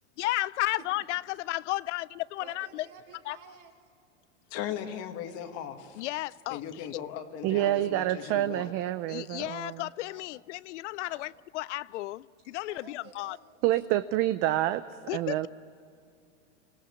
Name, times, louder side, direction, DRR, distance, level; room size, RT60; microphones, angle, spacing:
voice 1, 0.2-2.9 3.3-3.4 6.0-6.6 9.1-13.4 15.1-15.5, left 17 dB, 65° left, 0.5 m, -33 dB
voice 2, 2.4-4.3 6.8-8.0 8.9-9.0 10.1-10.5 11.0-11.3 12.7-13.4, right 6 dB, 50° right, 3.9 m, -54 dB
voice 3, 4.5-6.0 6.5-8.7, left 9 dB, 40° left, 1.8 m, -38 dB
voice 4, 7.4-9.8 13.6-14.8 15.1-15.5, right 14 dB, 35° right, 0.6 m, -27 dB
26.0 x 17.5 x 8.5 m
supercardioid pair, 135°, 39 cm